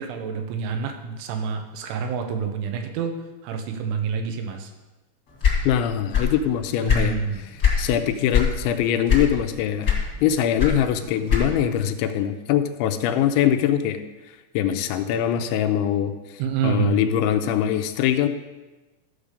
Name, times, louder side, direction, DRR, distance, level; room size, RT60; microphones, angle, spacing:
voice 1, 0.0-4.7 6.8-7.4 16.4-17.0, right 6 dB, 90° right, 5 dB, 3.5 m, -27 dB
sound 1, 5.4-6.4 6.7-7.9 8.3-8.6 9.1-9.5 9.8-11.7, left 7 dB, 40° left, 1.5 m, -21 dB
voice 2, 5.6-9.9 10.2-14.0 14.5-16.1 16.6-18.3, left 10 dB, 85° left, 8 dB, 3.0 m, -23 dB
14.0 x 5.0 x 6.7 m, 1.1 s
omnidirectional pair, 5.3 m